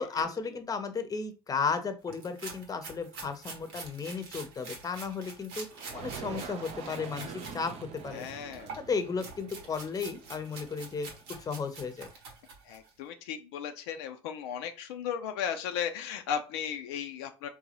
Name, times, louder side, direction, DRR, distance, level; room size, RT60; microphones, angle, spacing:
voice 1, 0.0-5.7 5.9-8.3 8.9-11.1 11.4-12.1, left 5 dB, 25° left, 9 dB, 0.7 m, -34 dB
sound 1, 2.1-7.6 7.9-12.9, right 4 dB, 75° right, 0.9 m, -46 dB
sound 2, 5.7-11.4, right 6 dB, 55° right, 0.6 m, -45 dB
voice 2, 8.1-8.7 12.7-17.5, left 8 dB, 75° left, 5 dB, 0.4 m, -36 dB
3.9 x 2.2 x 2.9 m, 0.32 s
hypercardioid pair, 60°, 13 cm